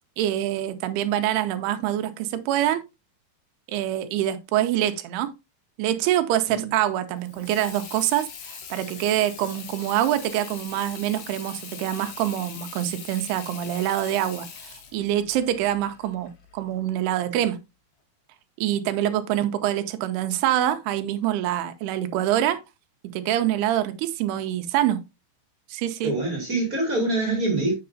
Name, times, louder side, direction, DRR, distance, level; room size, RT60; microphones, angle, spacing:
voice 1, 0.2-2.8 3.7-5.3 5.8-17.6 18.6-22.6 23.1-25.0 25.7-26.1, right 12 dB, 80° right, 2.7 m, -25 dB
Water tap faucet / Sink (filling or washing), 7.2-16.8, left 6 dB, 65° left, 1.9 m, -42 dB
voice 2, 26.0-27.7, right 2 dB, 25° right, 2.1 m, -25 dB
7.6 x 6.7 x 2.6 m
omnidirectional pair, 4.7 m